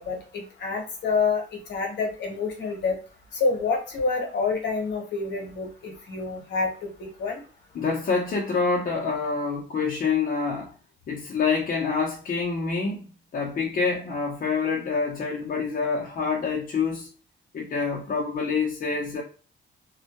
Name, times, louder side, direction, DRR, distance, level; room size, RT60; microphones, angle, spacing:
voice 1, 0.0-3.0 3.3-7.4, left 4 dB, 60° left, 1.0 m, -28 dB
voice 2, 7.7-10.7 11.1-17.1 17.5-19.2, left 5 dB, 45° left, 0.6 m, -27 dB
2.1 x 2.1 x 2.8 m
cardioid pair, 90°, 20 cm